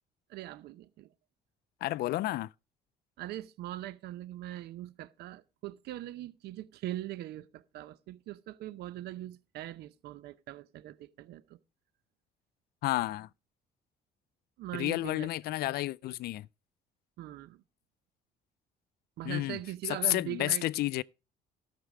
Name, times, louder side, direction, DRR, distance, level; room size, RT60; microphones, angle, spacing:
voice 1, 0.3-1.1 3.2-11.6 14.6-15.3 17.2-17.6 19.2-20.7, right 14 dB, 75° right, 0.7 m, -41 dB
voice 2, 1.8-2.5 12.8-13.3 14.7-16.5 19.2-19.6 19.9-21.0, left 16 dB, 70° left, 0.4 m, -31 dB
13.0 x 6.8 x 4.9 m
cardioid pair, 110°, 17 cm